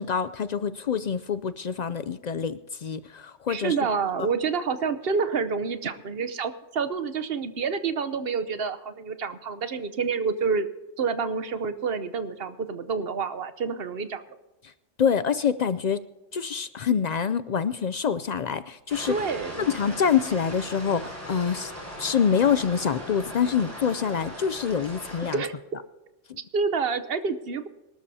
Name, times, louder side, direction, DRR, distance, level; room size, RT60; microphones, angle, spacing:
voice 1, 0.0-3.8 4.2-4.3 15.0-16.0 16.3-19.1 19.6-21.7 22.0-25.4, left 7 dB, 65° left, 14 dB, 0.4 m, -26 dB
voice 2, 3.5-10.7 11.0-14.2 19.1-19.7 25.3-25.6 26.5-27.7, right 5 dB, 55° right, 12 dB, 1.0 m, -28 dB
sound 1, 18.9-25.4, equal, 10° right, 4.9 m, -39 dB
24.5 x 12.5 x 2.8 m, 1.1 s
omnidirectional pair, 1.2 m